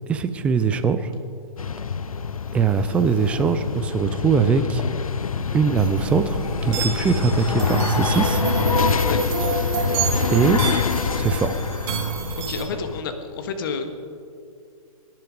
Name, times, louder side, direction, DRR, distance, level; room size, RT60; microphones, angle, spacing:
voice 1, 0.1-1.1 2.5-4.8 5.5-8.4 10.3-10.6 11.1-11.6, right 5 dB, 5° right, 11 dB, 0.4 m, -21 dB
sound 1, 1.6-13.0, left 6 dB, 65° left, 0.6 m, -26 dB
sound 2, 5.8-12.6, right 5 dB, 25° right, 2.1 m, -27 dB
voice 2, 9.0-9.4 10.5-10.7 12.4-13.9, left 5 dB, 35° left, 7 dB, 1.6 m, -30 dB
24.0 x 10.5 x 5.2 m, 2.4 s
figure-of-eight pair, 125°, 19 cm